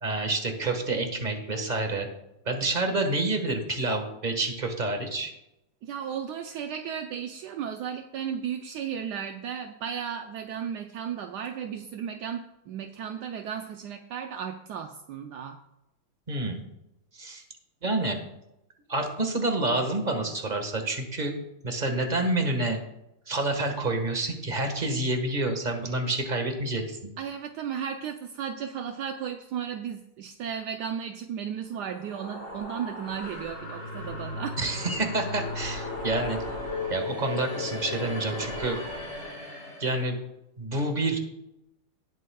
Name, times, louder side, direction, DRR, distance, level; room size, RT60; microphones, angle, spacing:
voice 1, 0.0-2.1 2.4-5.3 16.3-16.6 17.1-17.4 17.8-18.2 18.9-21.3 21.6-22.8 23.3-27.1 34.6-36.4 36.9-38.8 39.8-40.2 40.6-41.2, right 2 dB, 25° right, 5 dB, 1.3 m, -28 dB
voice 2, 5.8-15.6 27.2-34.6, right 8 dB, 70° right, 5 dB, 1.0 m, -35 dB
sound 1, 31.7-40.0, left 2 dB, 30° left, 2.7 m, -36 dB
18.5 x 8.2 x 2.3 m, 0.86 s
omnidirectional pair, 2.3 m